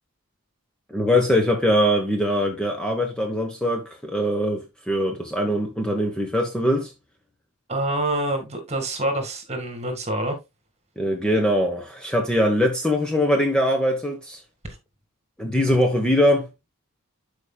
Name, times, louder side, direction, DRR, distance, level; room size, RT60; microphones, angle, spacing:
voice 1, 0.9-6.9 11.0-14.4 15.4-16.5, equal, 5° left, 1.1 m, -22 dB
voice 2, 7.7-10.4, right 1 dB, 30° right, 2.1 m, -26 dB
11.5 x 5.1 x 2.3 m
head